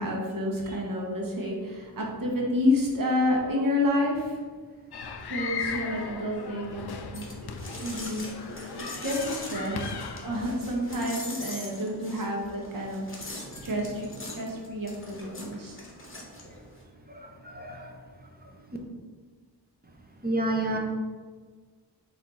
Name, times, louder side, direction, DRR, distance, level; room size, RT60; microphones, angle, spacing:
voice 1, 0.0-4.4 5.3-6.8 7.1-9.9 10.2-15.8, left 1 dB, 50° right, -2 dB, 1.0 m, -29 dB
sound 1, 4.9-10.4, left 5 dB, 60° left, 0.5 m, -37 dB
sound 2, 7.1-16.8, left 1 dB, 30° left, 0.9 m, -41 dB
voice 2, 17.1-18.5 20.2-20.8, right 1 dB, 20° right, 1 dB, 0.6 m, -32 dB
4.1 x 2.7 x 4.2 m, 1.5 s
wide cardioid pair, 90°, 44 cm